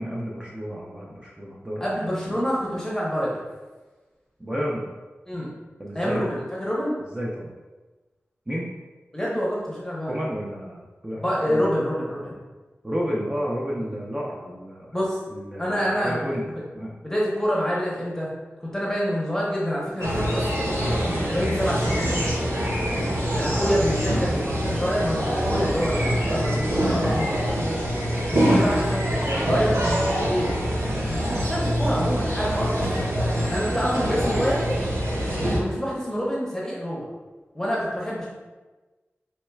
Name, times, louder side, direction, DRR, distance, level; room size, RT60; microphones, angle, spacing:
voice 1, 0.0-1.8 4.4-4.9 5.8-6.3 7.1-7.5 8.5-8.7 10.0-11.2 11.5-11.7 12.8-15.0 15.3-16.4 16.7-16.9 23.5-23.8 34.1-34.5, equal, 20° right, -5 dB, 0.5 m, -31 dB
voice 2, 1.8-3.4 5.3-5.5 5.9-6.9 9.1-10.1 11.1-12.4 13.9-14.0 14.9-15.2 15.6-16.6 17.0-18.3 18.6-20.8 21.3-22.6 23.3-27.6 28.3-30.6 31.0-33.0 33.5-34.6 35.5-37.1 37.5-38.3, equal, 10° left, -6 dB, 0.8 m, -27 dB
sound 1, 20.0-35.6, equal, 85° right, 0.8 m, -24 dB
4.3 x 3.1 x 2.3 m, 1.2 s
wide cardioid pair, 75°, 5 cm